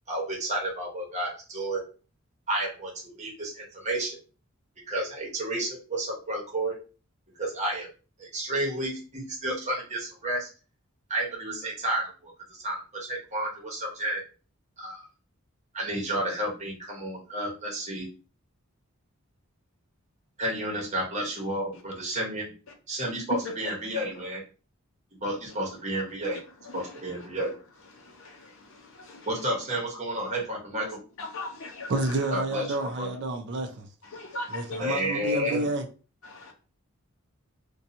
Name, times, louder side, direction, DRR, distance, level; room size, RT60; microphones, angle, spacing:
voice 1, 0.1-1.8 2.5-4.2 4.9-6.7 7.4-7.9 8.2-10.5 11.1-12.3 12.6-14.2 14.8-15.0 15.7-18.1 20.4-22.5 22.9-24.4 25.2-26.4 26.7-27.5 29.3-30.9 32.3-33.1 34.8-35.7, right 1 dB, 30° right, 1.0 m, -31 dB
voice 2, 25.5-25.9 26.6-27.4 27.9-29.5 30.8-32.3 32.7-33.1 34.0-34.9 36.2-36.5, left 2 dB, 60° left, 0.7 m, -40 dB
voice 3, 31.9-33.9 34.5-35.9, right 2 dB, 50° right, 0.4 m, -29 dB
2.7 x 2.2 x 2.6 m
head